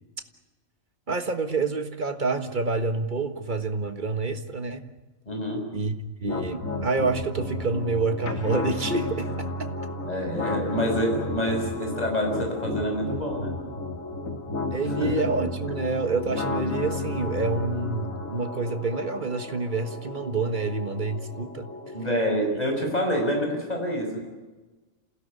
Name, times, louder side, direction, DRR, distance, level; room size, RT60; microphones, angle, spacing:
voice 1, 1.1-4.9 5.7-5.9 6.2-9.3 14.7-21.7, right 3 dB, 35° right, 8 dB, 1.7 m, -28 dB
voice 2, 5.3-5.6 10.0-13.6 14.8-15.1 21.9-24.2, equal, 30° left, 1 dB, 6.2 m, -27 dB
sound 1, 6.3-22.3, left 2 dB, 75° left, 2.5 m, -33 dB
27.5 x 17.0 x 9.7 m, 1.2 s
omnidirectional pair, 1.4 m